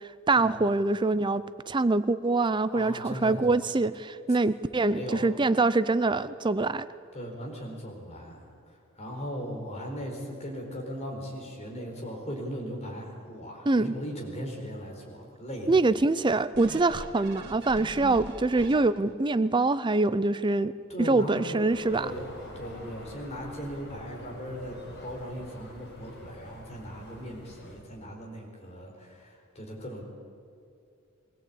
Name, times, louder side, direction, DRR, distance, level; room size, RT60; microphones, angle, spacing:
voice 1, 0.3-6.9 13.7-13.9 15.7-20.7 21.0-22.1, right 3 dB, 20° right, 14 dB, 0.5 m, -24 dB
voice 2, 2.7-3.6 4.9-5.3 7.1-16.0 20.9-21.6 22.0-22.3 22.5-30.0, equal, 30° left, 0 dB, 4.5 m, -38 dB
sound 1, 16.5-19.2 19.7-19.8, right 2 dB, 55° right, 2.2 m, -42 dB
sound 2, 21.7-27.8, equal, 50° left, 5.4 m, -47 dB
22.5 x 17.0 x 8.5 m, 2.4 s
head